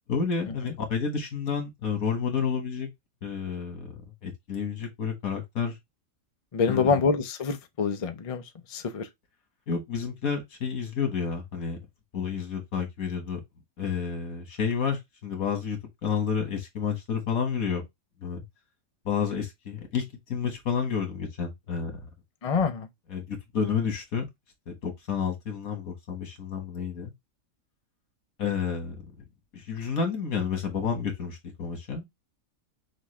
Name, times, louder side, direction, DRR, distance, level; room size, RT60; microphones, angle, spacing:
voice 1, 0.1-2.9 3.2-5.8 6.7-6.9 9.7-11.8 12.1-13.4 13.8-17.8 18.2-18.4 19.1-20.0 20.3-22.0 23.1-24.3 24.7-27.1 28.4-29.0 29.5-32.0, left 6 dB, 90° left, 1.9 m, -30 dB
voice 2, 6.5-8.4 8.7-9.1 22.4-22.9, left 5 dB, 35° left, 0.6 m, -26 dB
6.3 x 2.4 x 3.1 m
omnidirectional pair, 1.4 m